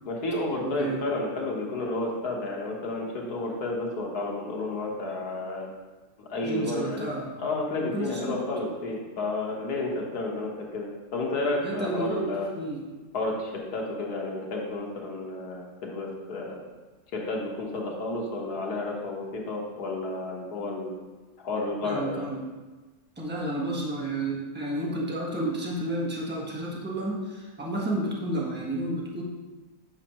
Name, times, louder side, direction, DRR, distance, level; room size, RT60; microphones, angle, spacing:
voice 1, 0.1-5.7 6.2-7.1 7.4-12.5 13.1-16.6 17.1-20.9 21.4-22.3, left 2 dB, 90° left, -1 dB, 1.8 m, -31 dB
voice 2, 0.6-1.0 6.4-7.3 7.8-8.4 11.6-12.8 21.8-22.4 23.2-29.2, right 1 dB, 10° right, -4 dB, 1.2 m, -31 dB
8.7 x 6.2 x 2.9 m, 1.3 s
omnidirectional pair, 1.6 m